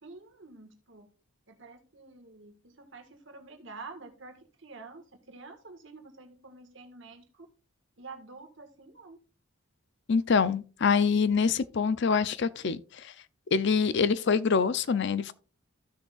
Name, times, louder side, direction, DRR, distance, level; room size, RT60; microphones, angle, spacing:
voice 1, 0.0-1.1 1.5-7.5 8.0-9.2, right 3 dB, 60° right, 1.6 m, -48 dB
voice 2, 10.1-13.1 13.5-15.3, left 5 dB, 55° left, 0.5 m, -25 dB
15.0 x 6.4 x 2.4 m
head